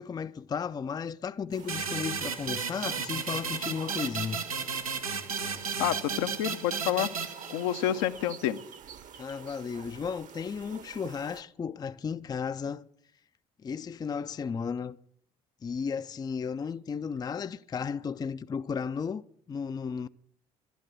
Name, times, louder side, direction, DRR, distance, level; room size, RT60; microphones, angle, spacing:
voice 1, 0.0-4.4 9.2-12.9 13.6-15.0 15.6-20.1, left 6 dB, 20° left, 0.4 m, -34 dB
sound 1, 1.5-11.4, right 8 dB, 45° right, 1.0 m, -49 dB
sound 2, 1.7-8.0, right 5 dB, 85° right, 0.8 m, -34 dB
voice 2, 5.4-7.1 7.5-8.6, left 11 dB, 70° left, 0.7 m, -29 dB
12.0 x 9.3 x 7.6 m
figure-of-eight pair, 55°, 18 cm